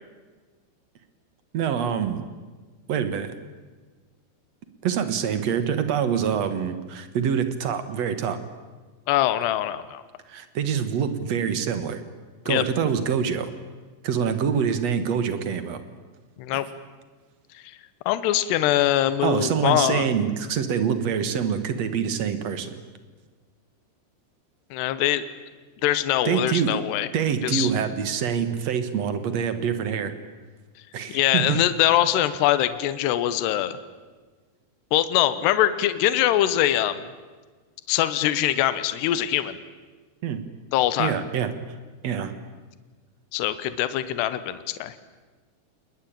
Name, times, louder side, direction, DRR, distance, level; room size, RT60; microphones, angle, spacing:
voice 1, 1.5-2.2 2.9-3.3 4.8-8.4 10.3-12.0 12.5-13.5 14.0-15.8 16.5-16.6 19.2-22.8 26.3-26.8 27.1-30.1 30.9-31.6 40.2-40.4 41.0-41.5 42.0-42.3, right 7 dB, 55° right, 10 dB, 2.0 m, -25 dB
voice 2, 9.1-10.0 12.5-12.6 16.4-16.7 18.1-20.1 24.7-25.2 25.8-27.1 27.4-27.7 31.1-33.8 34.9-37.1 37.9-39.6 40.7-41.1 43.3-44.9, left 13 dB, 75° left, 13 dB, 3.1 m, -23 dB
28.5 x 20.5 x 8.8 m, 1.4 s
omnidirectional pair, 5.0 m